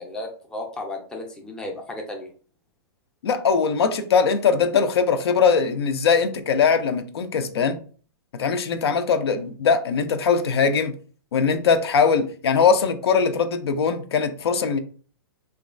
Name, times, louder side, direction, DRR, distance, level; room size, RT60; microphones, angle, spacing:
voice 1, 0.0-2.3, left 2 dB, 5° left, 0.4 m, -34 dB
voice 2, 3.2-7.8 8.4-10.9 11.3-14.8, left 6 dB, 85° left, 0.4 m, -21 dB
3.0 x 2.2 x 2.4 m
hypercardioid pair, 140°, 13 cm